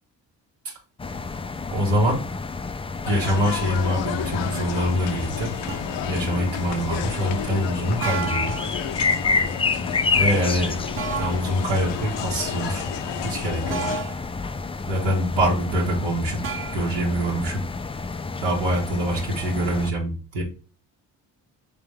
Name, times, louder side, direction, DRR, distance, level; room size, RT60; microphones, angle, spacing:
sound 1, 1.0-19.9, left 4 dB, 15° left, 0.3 m, -30 dB
voice 1, 1.7-2.3 3.1-5.5 6.0-8.5 10.1-10.8 11.2-12.9 13.2-13.9 14.9-16.4 16.7-17.6 18.4-20.4, equal, 80° right, -4 dB, 1.6 m, -24 dB
sound 2, 3.0-14.0, left 9 dB, 75° left, 0.7 m, -32 dB
sound 3, 5.7-6.0 8.0-8.8 11.0-11.5 13.7-14.3 16.4-16.7, right 5 dB, 60° right, 1.2 m, -30 dB
3.4 x 3.4 x 3.3 m, 0.36 s
supercardioid pair, 55°, 44 cm